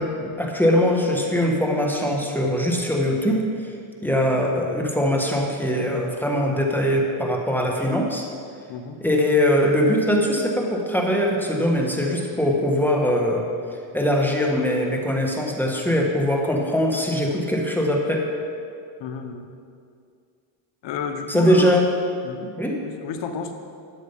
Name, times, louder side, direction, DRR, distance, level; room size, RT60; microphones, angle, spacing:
voice 1, 0.0-3.5 4.0-8.2 9.0-13.5 13.9-18.3 21.3-21.8 22.6-22.8, equal, 5° left, -1 dB, 1.3 m, -21 dB
voice 2, 8.7-9.0 19.0-19.5 20.8-21.7 22.2-22.5 22.8-23.5, left 6 dB, 60° left, 6 dB, 1.2 m, -31 dB
12.0 x 7.3 x 5.7 m, 2.3 s
cardioid pair, 120°, 48 cm